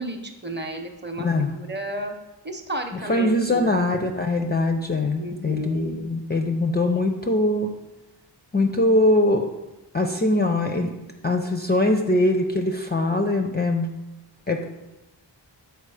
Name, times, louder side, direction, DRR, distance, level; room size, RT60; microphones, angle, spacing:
voice 1, 0.0-1.3 1.5-2.1 2.4-3.9 5.2-6.0, right 1 dB, 25° right, 4 dB, 0.7 m, -32 dB
voice 2, 1.2-1.5 3.1-7.7 8.5-9.5 9.9-10.9 11.2-13.9 14.5-14.6, left 2 dB, 25° left, 4 dB, 0.4 m, -22 dB
6.7 x 4.6 x 4.8 m, 1.0 s
wide cardioid pair, 150°, 44 cm